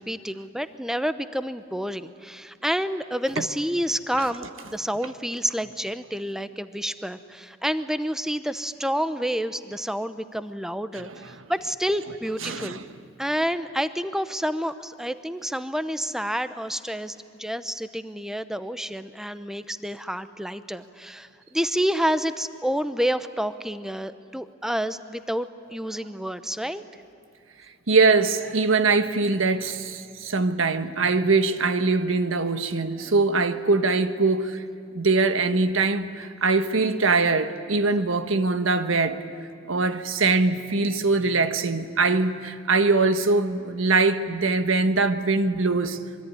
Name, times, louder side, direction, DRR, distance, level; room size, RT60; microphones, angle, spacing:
voice 1, 0.0-12.8 13.2-26.8, equal, ahead, 11 dB, 0.8 m, -29 dB
voice 2, 12.4-12.8 27.9-34.6 34.9-39.2 39.7-46.0, right 3 dB, 75° right, 9 dB, 1.4 m, -22 dB
25.0 x 23.5 x 9.9 m, 2.5 s
head